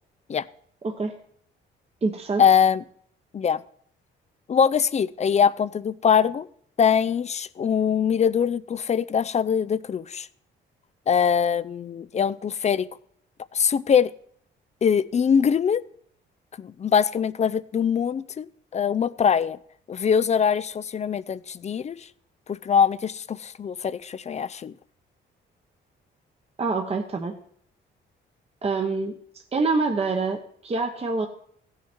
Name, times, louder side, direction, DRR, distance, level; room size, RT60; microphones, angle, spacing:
voice 1, 0.8-1.1 2.0-2.4 26.6-27.3 28.6-29.1 29.5-31.3, right 3 dB, 30° right, 4 dB, 1.1 m, -26 dB
voice 2, 2.4-2.8 3.3-3.6 4.5-6.5 6.8-10.3 11.1-12.9 13.5-14.1 14.8-15.8 16.6-19.6 19.9-22.1 22.5-24.7, left 7 dB, 35° left, 17 dB, 0.4 m, -22 dB
15.5 x 6.5 x 4.5 m, 0.65 s
cardioid pair, 90°, 20 cm